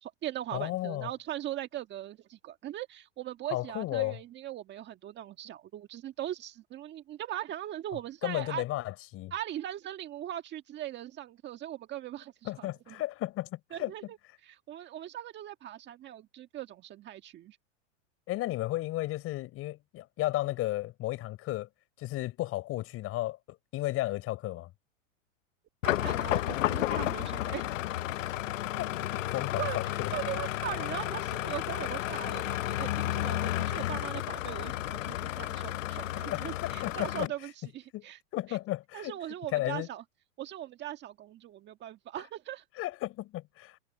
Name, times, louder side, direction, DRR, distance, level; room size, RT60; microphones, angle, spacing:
voice 1, 0.0-8.6 9.3-12.9 13.7-14.2 14.4-17.6 25.8-27.7 29.6-38.2 38.5-38.6 38.9-40.0 40.4-42.6, right 12 dB, 30° right, 1.6 m, -40 dB
voice 2, 0.5-1.1 3.5-4.2 8.2-9.3 12.4-13.9 18.3-21.7 22.0-24.7 28.8-30.1 36.3-37.3 37.9-38.0 38.3-39.2 39.5-39.9 42.8-43.8, left 16 dB, 35° left, 4.8 m, -34 dB
sound 1, 25.8-37.3, left 14 dB, 85° left, 0.8 m, -32 dB
supercardioid pair, 135°, 37 cm